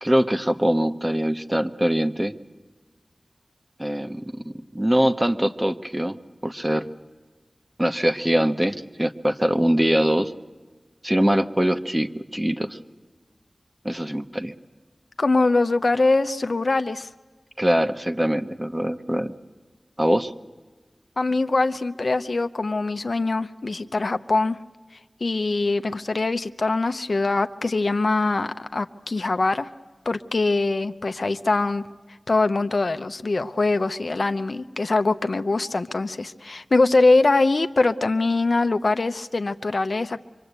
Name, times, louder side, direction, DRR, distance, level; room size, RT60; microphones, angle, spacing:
voice 1, 0.0-2.3 3.8-6.1 6.4-6.8 7.8-10.3 11.0-12.8 13.8-14.5 17.6-19.3 20.0-20.3, equal, 15° right, 9 dB, 1.1 m, -23 dB
voice 2, 15.2-17.1 21.2-24.6 25.2-29.7 30.1-31.9 32.3-40.2, left 3 dB, 70° left, 9 dB, 0.8 m, -23 dB
25.5 x 23.5 x 8.2 m, 1.3 s
wide cardioid pair, 50°, 0 cm